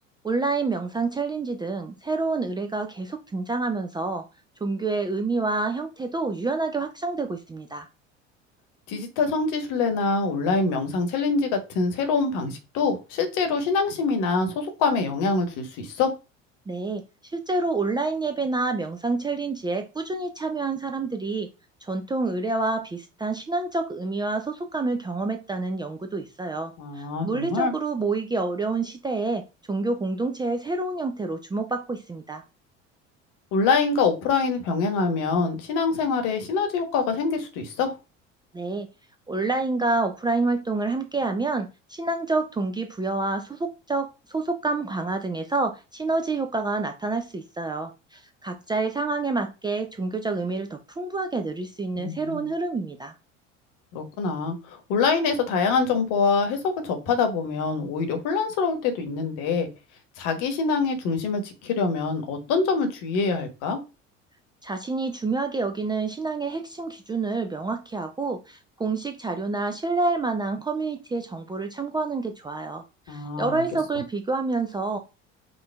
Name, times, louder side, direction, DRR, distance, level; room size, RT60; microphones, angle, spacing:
voice 1, 0.2-4.3 4.6-7.9 16.7-21.5 21.8-32.4 38.5-38.9 39.3-53.1 64.6-75.0, right 3 dB, 10° right, 0.5 m, -28 dB
voice 2, 8.9-16.1 26.8-27.7 33.5-37.9 51.9-52.4 53.9-59.7 60.2-63.8 73.1-73.6, left 4 dB, 55° left, 1.4 m, -25 dB
5.5 x 2.7 x 3.4 m
figure-of-eight pair, 70°, 38 cm